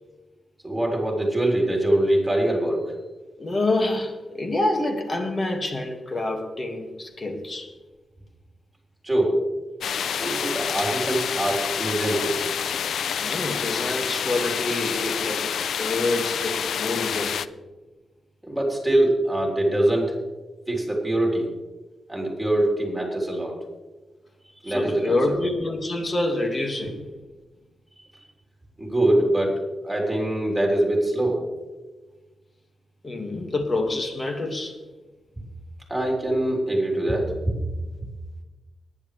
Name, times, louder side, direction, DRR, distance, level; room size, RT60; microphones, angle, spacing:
voice 1, 0.6-2.9 9.0-9.4 10.0-12.4 18.4-20.2 20.7-21.5 22.1-23.5 24.6-25.4 28.8-31.4 35.9-37.6, right 1 dB, 5° right, 3.6 m, -23 dB
voice 2, 3.4-7.7 13.2-15.5 15.8-17.4 24.7-27.1 33.0-34.8, left 2 dB, 35° left, 1.9 m, -27 dB
sound 1, 9.8-17.5, left 8 dB, 80° left, 0.4 m, -28 dB
19.5 x 10.5 x 3.3 m
wide cardioid pair, 115°, 0 cm